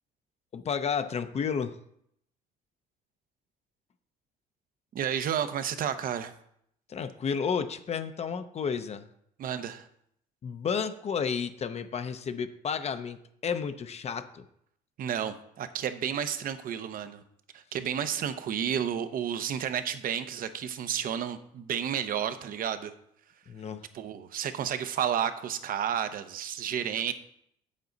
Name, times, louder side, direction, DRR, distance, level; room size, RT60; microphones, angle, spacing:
voice 1, 0.5-1.8 6.9-9.1 10.4-14.4 23.5-23.8, left 6 dB, 40° left, 9 dB, 0.7 m, -32 dB
voice 2, 4.9-6.3 9.4-9.9 15.0-17.2 17.5-22.9 23.9-27.1, right 9 dB, 55° right, 10 dB, 0.8 m, -31 dB
8.4 x 7.4 x 4.0 m, 0.71 s
cardioid pair, 110°, 17 cm